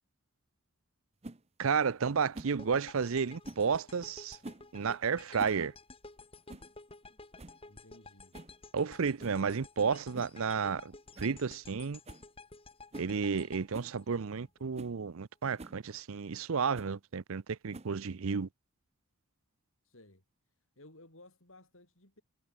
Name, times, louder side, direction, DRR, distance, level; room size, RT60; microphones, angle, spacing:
sound 1, 1.2-1.4 2.3-2.6 3.4-3.7 4.4-4.7 5.2-5.6 5.9-6.0 6.5-6.7 7.1-7.2 7.4-7.6 8.3-8.6 9.2-9.4 10.1-10.4 10.7-10.8 11.1-11.4 11.6-11.7 12.0-12.3 12.9-13.1 13.7-13.9 14.4-14.5 14.7-15.0 15.6-15.8 16.7-17.0 17.7-18.1, right 2 dB, 30° right, 0.8 m, -47 dB
voice 1, 1.6-4.4 4.7-5.7 8.7-12.0 13.0-18.5, right 5 dB, 65° right, 0.6 m, -32 dB
sound 2, 2.6-14.8, left 3 dB, 25° left, 2.6 m, -53 dB
voice 2, 7.7-8.4 19.8-20.2 20.8-22.2, left 2 dB, 60° left, 5.3 m, -57 dB
head